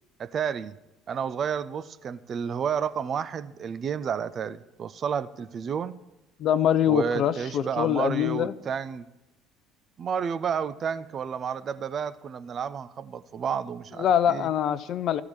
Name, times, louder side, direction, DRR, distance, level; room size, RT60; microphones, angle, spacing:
voice 1, 0.2-0.8 1.1-6.0 6.9-9.1 10.0-14.5, right 7 dB, 45° right, 14 dB, 0.5 m, -31 dB
voice 2, 6.4-8.5 14.0-15.2, left 10 dB, 50° left, 16 dB, 0.5 m, -24 dB
13.0 x 4.8 x 8.7 m, 0.99 s
hypercardioid pair, 60°, 0 cm